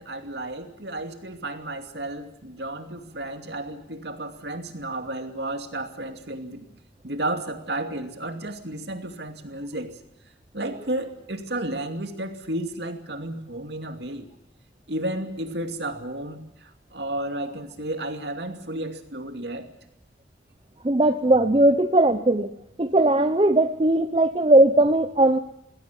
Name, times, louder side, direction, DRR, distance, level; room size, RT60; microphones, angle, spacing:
voice 1, 0.0-6.6 7.0-10.0 10.5-14.3 14.9-19.7, right 1 dB, 60° right, 6 dB, 2.6 m, -32 dB
voice 2, 20.8-22.5 22.8-25.4, right 1 dB, 30° right, 9 dB, 0.8 m, -19 dB
20.0 x 17.5 x 9.9 m, 0.79 s
head